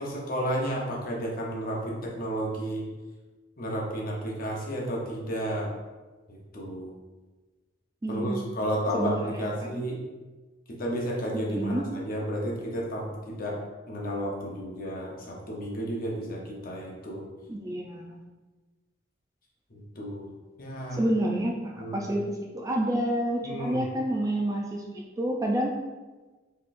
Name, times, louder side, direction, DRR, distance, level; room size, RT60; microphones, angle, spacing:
voice 1, 0.0-2.9 3.6-5.7 6.3-6.9 8.1-10.0 10.7-13.6 13.9-17.3 19.7-20.3 20.6-21.0 21.8-22.0 23.4-23.8, equal, 50° left, -2 dB, 0.8 m, -32 dB
voice 2, 8.0-8.5 8.9-9.9 11.5-11.8 17.5-18.2 20.9-25.8, right 1 dB, 15° right, -1 dB, 0.3 m, -29 dB
3.9 x 3.0 x 2.5 m, 1.3 s
head